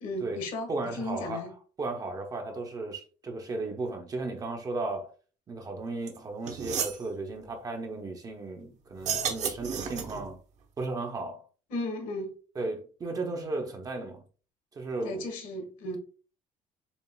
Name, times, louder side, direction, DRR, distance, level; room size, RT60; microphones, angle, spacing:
voice 1, 0.0-1.5 11.7-12.3 15.0-16.0, left 1 dB, 75° left, 1.5 m, -35 dB
voice 2, 0.7-5.1 5.5-10.4 10.8-11.5 12.5-14.2 14.8-15.3, right 2 dB, 25° right, 0.7 m, -35 dB
sound 1, 6.1-6.2 6.5-7.0 8.9-10.3, right 7 dB, 55° right, 0.9 m, -32 dB
7.0 x 2.4 x 2.2 m
cardioid pair, 165°, 14 cm